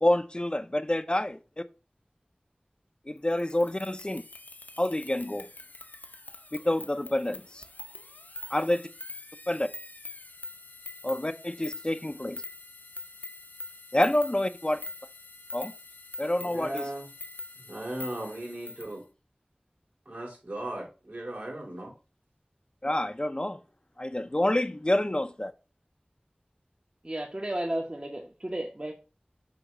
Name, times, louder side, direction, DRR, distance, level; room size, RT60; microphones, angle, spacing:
voice 1, 0.0-1.6 3.1-4.2 4.8-5.5 6.6-7.6 8.5-8.9 9.5-9.7 11.0-12.4 13.9-14.8 15.5-15.7 16.2-16.8 22.8-23.6 24.0-25.5, left 1 dB, 30° left, 0.5 m, -28 dB
sound 1, 3.3-18.9, left 2 dB, 75° left, 0.8 m, -44 dB
voice 2, 16.4-17.1 17.6-19.0 20.1-21.9, right 1 dB, 70° right, 4.0 m, -37 dB
voice 3, 27.0-28.9, right 1 dB, 35° right, 1.0 m, -33 dB
7.8 x 2.8 x 6.0 m
wide cardioid pair, 45°, 3 cm